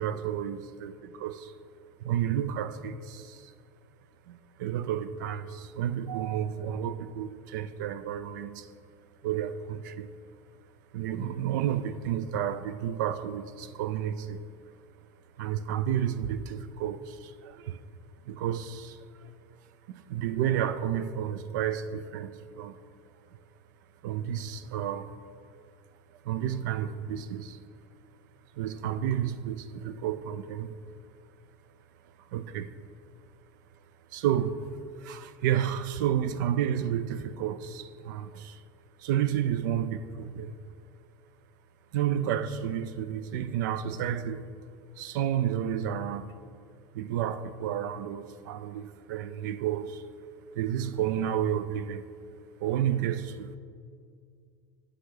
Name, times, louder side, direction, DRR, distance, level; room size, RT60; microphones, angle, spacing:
voice 1, 0.0-1.5 2.0-3.5 4.3-8.7 9.2-10.1 10.9-14.4 15.4-17.8 18.3-19.3 19.9-22.8 24.0-25.1 26.2-27.6 28.6-30.7 32.3-32.7 34.1-34.7 35.0-38.6 39.0-40.5 41.9-44.5 45.0-46.4 46.9-50.0 50.5-52.0 52.6-53.5, right 10 dB, 90° right, 0.4 m, -31 dB
9.6 x 6.6 x 3.8 m
cardioid pair, 165°, 10 cm